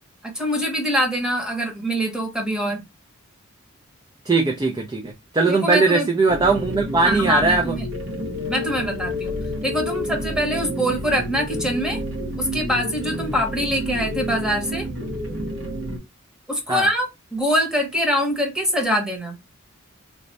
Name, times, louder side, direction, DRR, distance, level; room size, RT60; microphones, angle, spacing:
voice 1, 0.2-2.8 5.5-6.1 7.0-7.9 8.5-9.3 9.6-12.0 12.4-14.9 16.5-19.4, equal, 5° right, 0.9 m, -24 dB
voice 2, 4.3-7.8 16.7-16.9, right 3 dB, 20° right, 0.4 m, -20 dB
sound 1, 6.3-16.0, left 1 dB, 60° right, 1.0 m, -30 dB
3.2 x 2.1 x 4.0 m
head